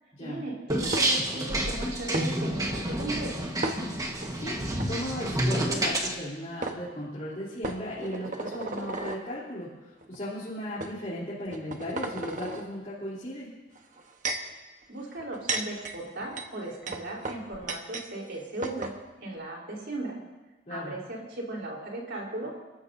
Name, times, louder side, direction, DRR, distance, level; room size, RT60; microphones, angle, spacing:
voice 1, 0.2-3.5 14.9-18.9 19.2-20.2 20.7-22.5, right 2 dB, 75° right, -1 dB, 3.9 m, -37 dB
sound 1, 0.7-6.1, right 1 dB, 20° right, 1.4 m, -29 dB
sound 2, 0.9-1.4 2.1-2.3 3.6-4.3 4.7-4.9 6.2-6.3 6.6-6.8 7.6-9.2 10.0-10.2 10.8-10.9 11.5-12.6 13.8-14.5 15.2-18.1 18.3-18.4 18.6-19.0, right 2 dB, 45° right, 1.1 m, -34 dB
voice 2, 4.9-13.5 20.7-20.9, left 1 dB, 40° left, -9 dB, 3.4 m, -36 dB
29.5 x 14.0 x 2.7 m, 1.2 s
head